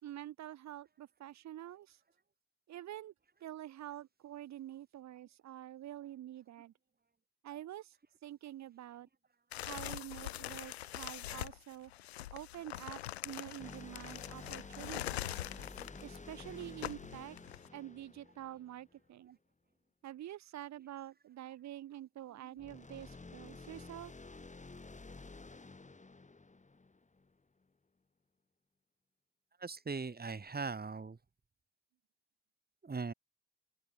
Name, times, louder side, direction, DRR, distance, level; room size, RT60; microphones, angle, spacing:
voice 1, 0.0-2.0 2.7-3.1 3.4-6.7 7.4-7.9 8.2-9.1 9.7-11.9 12.3-15.4 16.0-17.4 17.7-19.4 20.0-24.1, right 12 dB, 60° right, 5.1 m, -47 dB
sound 1, 9.5-17.7, left 14 dB, 80° left, 1.9 m, -43 dB
sound 2, 13.6-19.1 22.6-27.3, left 3 dB, 25° left, 5.6 m, -51 dB
voice 2, 29.6-31.2 32.8-33.1, right 4 dB, 30° right, 6.6 m, -40 dB
open air
figure-of-eight pair, 40°, 31 cm